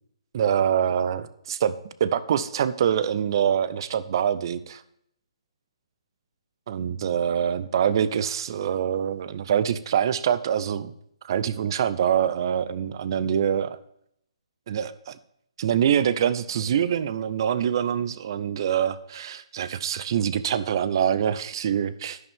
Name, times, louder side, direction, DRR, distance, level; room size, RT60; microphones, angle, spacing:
voice 1, 0.3-1.7 2.0-4.8 6.7-10.9 11.2-13.8 14.7-15.2 15.6-22.2, right 9 dB, 45° right, 16 dB, 0.6 m, -25 dB
10.5 x 9.9 x 3.6 m, 0.73 s
hypercardioid pair, 160°, 3 cm